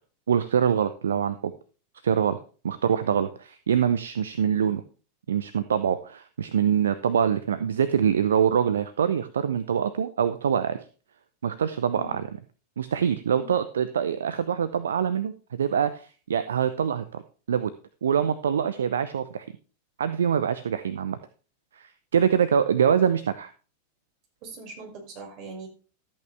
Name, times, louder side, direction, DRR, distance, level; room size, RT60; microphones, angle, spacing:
voice 1, 0.3-1.5 2.0-2.4 2.6-4.8 5.3-10.8 11.4-12.2 12.8-15.3 15.6-17.2 17.5-17.7 18.0-19.5 20.0-21.2 21.8-23.5, right 8 dB, 65° right, 12 dB, 0.6 m, -24 dB
voice 2, 24.4-25.7, right 2 dB, 45° right, 0 dB, 5.7 m, -41 dB
13.5 x 8.7 x 3.4 m, 0.37 s
figure-of-eight pair, 90°, 0 cm